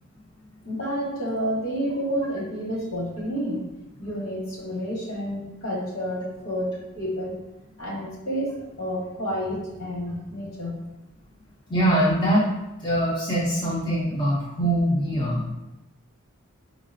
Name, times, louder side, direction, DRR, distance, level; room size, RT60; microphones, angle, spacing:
voice 1, 0.6-3.7 4.0-7.4 7.8-10.8, equal, 65° left, -3 dB, 1.4 m, -30 dB
voice 2, 11.7-12.5 12.8-15.5, right 1 dB, 20° left, -6 dB, 0.6 m, -23 dB
4.6 x 4.0 x 2.6 m, 0.94 s
head